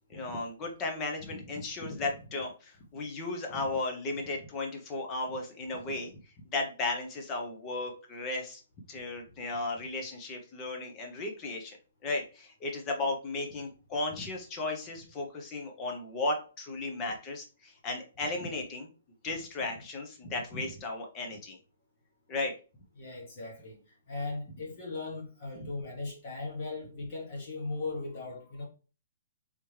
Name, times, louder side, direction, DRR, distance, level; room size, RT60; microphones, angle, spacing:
voice 1, 0.1-6.1 6.5-8.6 8.9-11.8 12.0-18.9 19.2-21.6 22.3-22.5 25.6-25.7, left 2 dB, 15° left, 0.6 m, -35 dB
voice 2, 23.0-23.7 24.1-28.6, left 3 dB, 35° left, 1.1 m, -38 dB
3.5 x 2.9 x 3.1 m
hypercardioid pair, 180°, 0 cm